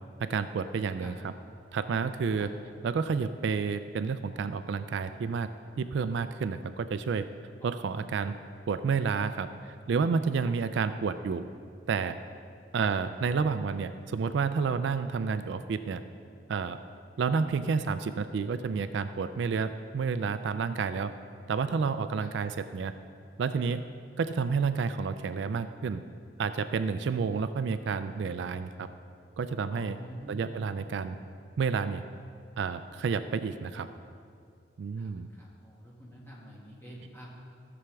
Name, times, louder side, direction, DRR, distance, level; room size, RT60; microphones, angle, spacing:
voice 1, 0.2-1.3 1.7-2.5 2.8-5.5 5.8-7.3 7.6-8.4 8.7-11.4 11.9-12.2 12.7-16.0 16.5-16.8 17.2-21.1 21.5-22.9 23.4-23.8 24.2-26.0 26.4-28.9 29.4-30.0 30.3-31.2 31.6-32.0 32.6-33.9 34.8-35.3, right 5 dB, 65° right, 11 dB, 0.3 m, -30 dB
voice 2, 29.7-30.4 35.0-37.3, equal, 10° left, -6 dB, 1.9 m, -46 dB
14.5 x 7.0 x 3.4 m, 2.4 s
head